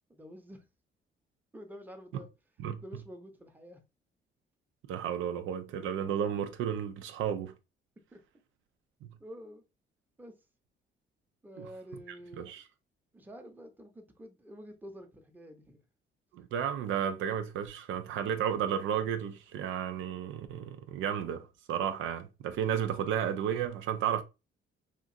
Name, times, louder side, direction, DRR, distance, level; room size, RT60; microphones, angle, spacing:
voice 1, 0.1-0.6 1.5-2.3 2.8-3.8 8.1-8.2 9.2-9.6 10.2-10.3 11.4-12.6 13.1-15.8, equal, 10° right, 0.7 m, -48 dB
voice 2, 4.9-7.5 9.0-9.1 11.6-11.7 12.4-12.6 16.3-24.2, right 9 dB, 85° right, 0.4 m, -33 dB
2.9 x 2.5 x 2.5 m
cardioid pair, 90°, 20 cm